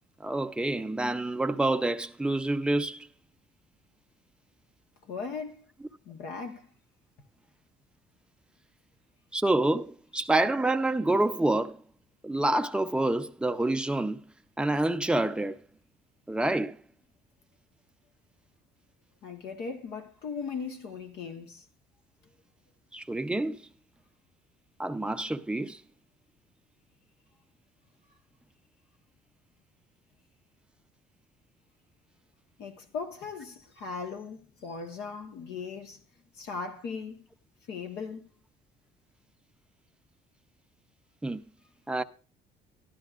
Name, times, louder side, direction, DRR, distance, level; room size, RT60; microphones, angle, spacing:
voice 1, 0.2-3.1 9.3-11.8 12.2-14.2 14.6-15.6 16.3-16.8 22.9-23.6 24.8-25.8 41.2-41.4 41.9-42.0, right 2 dB, 5° right, 0.6 m, -27 dB
voice 2, 5.1-5.6 6.0-6.7 19.2-21.6 32.6-36.0 36.3-37.3 37.7-38.3, left 5 dB, 80° left, 1.3 m, -38 dB
12.5 x 11.5 x 2.5 m
cardioid pair, 110°, 17 cm